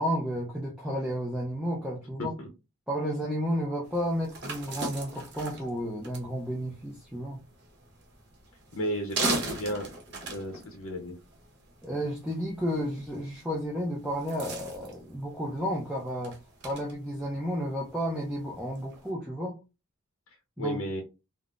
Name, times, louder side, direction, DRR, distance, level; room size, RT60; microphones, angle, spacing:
voice 1, 0.0-2.3 2.9-7.4 11.8-16.3 16.6-19.6 20.6-20.8, equal, 5° right, 0.4 m, -32 dB
sound 1, 3.8-19.1, right 3 dB, 50° right, 0.9 m, -40 dB
voice 2, 8.8-9.9 10.3-11.1 20.6-21.0, equal, 70° left, 0.6 m, -33 dB
3.5 x 2.0 x 2.4 m
head